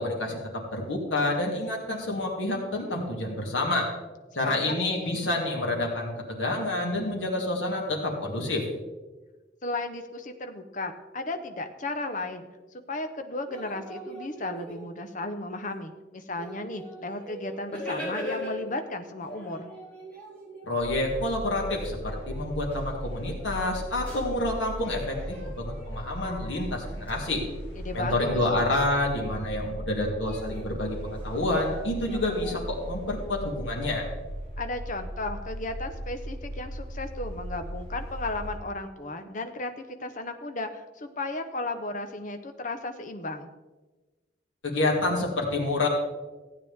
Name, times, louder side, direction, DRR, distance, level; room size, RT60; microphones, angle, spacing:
voice 1, 0.0-3.9 4.3-8.6 20.7-27.4 27.9-34.0 44.6-45.9, left 2 dB, 85° left, 0 dB, 2.7 m, -28 dB
voice 2, 4.4-5.2 9.6-12.5 12.9-19.7 27.8-28.4 34.6-43.5, left 2 dB, 45° left, 7 dB, 1.0 m, -35 dB
sound 1, 13.4-15.2 15.9-16.0 16.4-18.8 19.2-24.4 24.7-27.1 30.2-32.5, equal, 10° left, 4.6 m, -41 dB
sound 2, 20.8-38.6, right 1 dB, 25° left, 3.4 m, -38 dB
15.5 x 9.0 x 3.6 m, 1.2 s
head